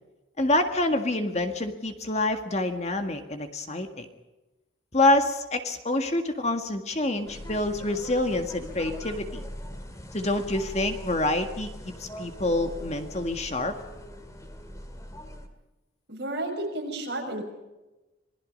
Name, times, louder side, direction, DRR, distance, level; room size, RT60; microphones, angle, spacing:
voice 1, 0.4-4.1 4.9-9.4 10.1-13.7, left 2 dB, 35° left, 6 dB, 1.8 m, -27 dB
sound 1, 7.2-15.5, equal, 15° left, 2.2 m, -41 dB
voice 2, 16.1-17.4, right 1 dB, 55° right, 0 dB, 6.5 m, -32 dB
27.0 x 20.5 x 5.4 m, 1.1 s
head